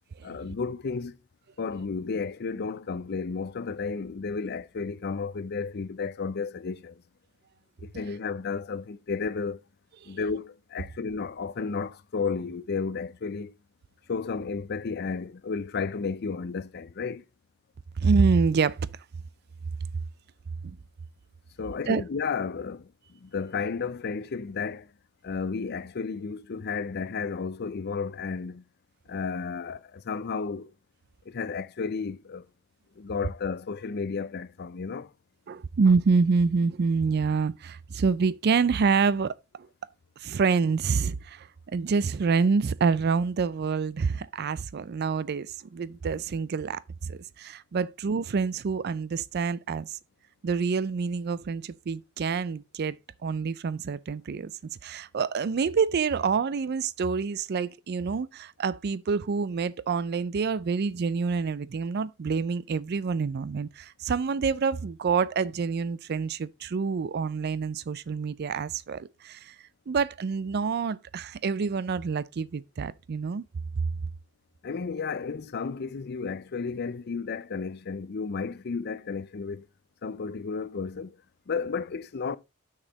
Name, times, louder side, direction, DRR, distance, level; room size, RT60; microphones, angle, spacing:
voice 1, 0.2-1.2 1.6-7.0 7.8-9.6 10.1-13.5 14.1-17.2 21.6-24.9 25.2-28.6 29.1-30.7 31.3-32.4 33.0-35.1 74.6-79.7 80.0-82.4, left 5 dB, 50° left, 0.5 m, -33 dB
voice 2, 18.0-18.8 20.6-20.8 21.9-22.0 35.5-39.4 40.2-50.0 50.4-53.0 53.2-69.5 69.9-73.4, right 5 dB, 50° right, 0.4 m, -27 dB
6.4 x 6.2 x 4.0 m
head